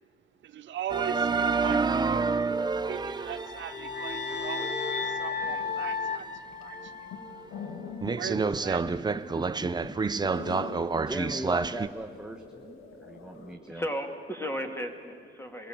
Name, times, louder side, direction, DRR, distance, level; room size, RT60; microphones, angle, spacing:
voice 1, 0.4-2.3 2.9-8.8 9.3-9.5, right 10 dB, 70° right, 11 dB, 0.7 m, -40 dB
sound 1, 0.9-6.3 6.8-6.9 7.4-7.5 8.0-11.9, right 4 dB, 20° right, 0.7 m, -29 dB
sound 2, 3.2-7.5, left 5 dB, 55° left, 1.3 m, -34 dB
sound 3, 4.5-4.6 4.8-13.5, left 4 dB, 85° left, 2.2 m, -44 dB
voice 2, 9.3-13.8, right 1 dB, 5° right, 4 dB, 1.1 m, -39 dB
voice 3, 13.7-15.7, equal, 10° left, 5 dB, 2.5 m, -35 dB
23.0 x 16.0 x 8.7 m, 2.1 s
cardioid pair, 90°, 20 cm